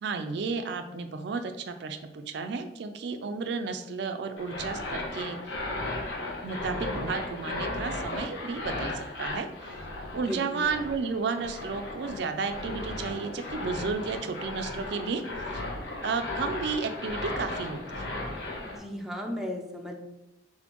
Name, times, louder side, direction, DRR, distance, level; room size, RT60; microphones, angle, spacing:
voice 1, 0.0-5.4 6.4-9.8 10.1-15.2 15.5-15.6 16.0-18.1, right 4 dB, 70° right, 7 dB, 0.4 m, -33 dB
sound 1, 4.4-18.8, left 2 dB, 75° left, 0.8 m, -36 dB
voice 2, 10.3-10.7 18.8-20.0, equal, ahead, 1 dB, 0.5 m, -35 dB
4.2 x 3.8 x 2.9 m, 0.91 s
head